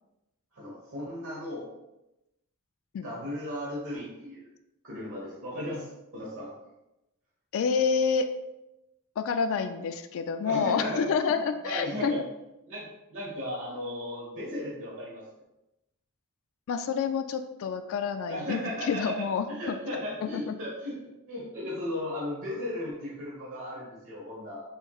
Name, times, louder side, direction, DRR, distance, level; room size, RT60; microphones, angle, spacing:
voice 1, 0.5-1.6 3.0-4.4 4.8-5.9 6.1-6.5 10.4-11.4 11.6-12.2 12.6-15.2 18.2-19.1 19.5-21.0 21.3-24.6, left 1 dB, 65° right, -6 dB, 1.2 m, -36 dB
voice 2, 7.5-8.3 9.2-12.2 16.7-20.5, left 6 dB, 65° left, 9 dB, 0.3 m, -28 dB
6.3 x 3.1 x 2.3 m, 0.92 s
head